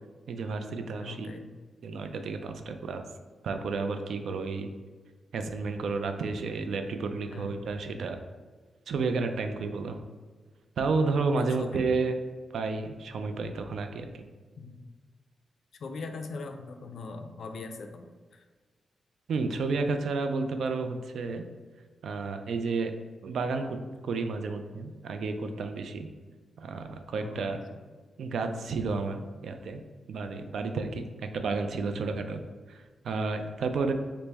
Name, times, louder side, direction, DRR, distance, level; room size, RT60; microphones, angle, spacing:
voice 1, 0.3-1.4 1.8-3.0 3.4-4.7 5.3-8.2 8.9-10.0 10.8-12.2 12.5-14.2 19.3-21.4 22.0-22.9 23.2-23.8 24.0-26.1 26.6-27.6 28.2-29.8 30.1-32.4 32.7-33.9, right 4 dB, 75° right, 6 dB, 0.3 m, -31 dB
voice 2, 0.9-1.5 7.3-7.6 11.3-11.8 14.6-14.8 15.8-18.4 27.2-27.5, left 4 dB, 70° left, 6 dB, 0.3 m, -41 dB
4.1 x 2.0 x 3.4 m, 1.4 s
wide cardioid pair, 115°, 0 cm